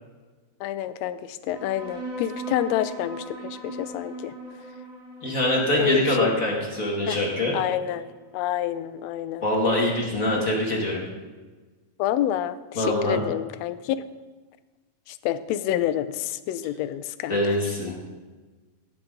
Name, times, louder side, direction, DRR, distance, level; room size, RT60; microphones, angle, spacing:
voice 1, 0.6-4.3 5.8-6.3 7.1-7.2 7.5-9.4 10.4-10.5 12.0-14.0 15.1-17.6, left 11 dB, 80° left, 12 dB, 1.5 m, -28 dB
sound 1, 1.5-8.4, right 1 dB, 70° right, 4.1 m, -39 dB
voice 2, 5.2-7.6 9.4-11.0 12.8-13.2 17.3-18.1, left 1 dB, 30° left, -2 dB, 1.8 m, -24 dB
17.0 x 7.4 x 3.8 m, 1.3 s
omnidirectional pair, 3.5 m